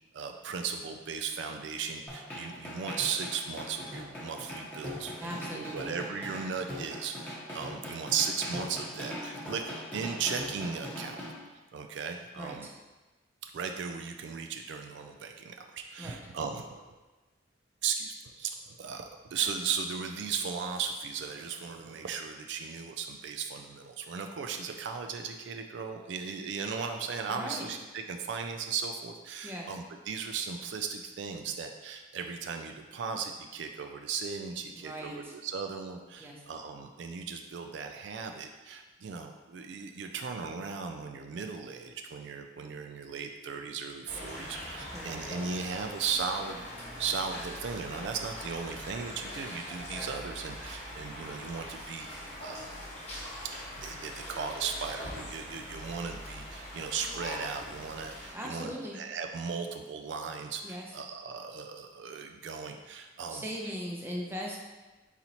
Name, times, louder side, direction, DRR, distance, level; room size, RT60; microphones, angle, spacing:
voice 1, 0.1-11.2 11.7-12.7 13.4-16.9 17.8-52.1 52.4-52.7 53.8-63.4, right 6 dB, 70° right, 5 dB, 0.3 m, -37 dB
sound 1, 2.1-11.3, left 1 dB, 10° left, 0.9 m, -41 dB
voice 2, 5.2-5.9 12.4-12.7 16.0-16.2 27.3-27.7 29.4-29.7 34.7-35.3 36.2-36.3 44.9-45.3 58.3-59.0 60.6-61.0 63.3-64.6, equal, 10° right, -2 dB, 0.6 m, -39 dB
sound 2, 44.1-58.3, left 1 dB, 35° left, 1.1 m, -42 dB
4.3 x 4.0 x 2.9 m, 1.2 s
head